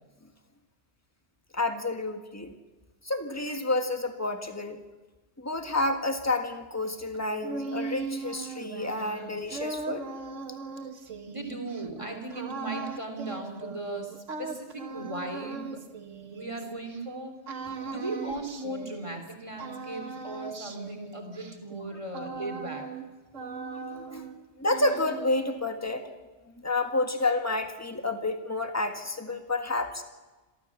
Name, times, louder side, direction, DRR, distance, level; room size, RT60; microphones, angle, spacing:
voice 1, 1.5-2.5 3.0-4.8 5.4-10.0 17.8-17.9 23.9-24.3 24.6-26.1 26.6-30.0, left 2 dB, 15° left, 6 dB, 1.6 m, -30 dB
sound 1, 7.1-17.0 17.5-19.3 19.6-23.1 23.3-24.4 24.7-25.6, right 4 dB, 90° right, 1.7 m, -39 dB
voice 2, 11.3-15.8 16.3-22.9, right 2 dB, 25° right, 4 dB, 3.3 m, -37 dB
28.0 x 13.5 x 7.2 m, 1.2 s
omnidirectional pair, 1.2 m